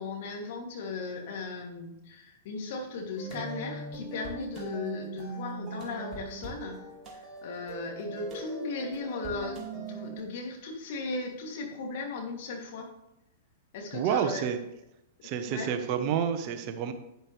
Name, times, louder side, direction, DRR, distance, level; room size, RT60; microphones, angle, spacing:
voice 1, 0.0-6.8 7.1-12.9 13.7-14.4 15.2-15.7, left 3 dB, 55° left, 1 dB, 2.7 m, -37 dB
sound 1, 3.2-10.2, right 3 dB, 25° right, 2.4 m, -40 dB
voice 2, 13.9-14.6 15.2-16.9, right 8 dB, 45° right, 8 dB, 1.1 m, -29 dB
11.0 x 9.5 x 3.4 m, 0.85 s
figure-of-eight pair, 105°, 0 cm